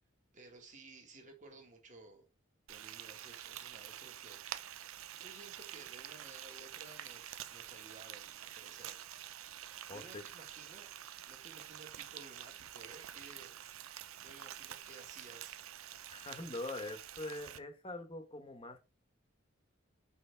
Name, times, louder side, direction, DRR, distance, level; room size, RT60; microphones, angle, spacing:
voice 1, 0.3-2.3 2.7-4.4 5.2-9.1 9.9-10.9 11.3-13.5 14.2-15.6, right 3 dB, 35° right, 1.8 m, -56 dB
Frying (food), 2.7-17.6, right 11 dB, 90° right, 0.5 m, -48 dB
voice 2, 9.9-10.2 16.1-18.8, left 2 dB, 25° left, 1.1 m, -43 dB
5.6 x 5.5 x 3.4 m
head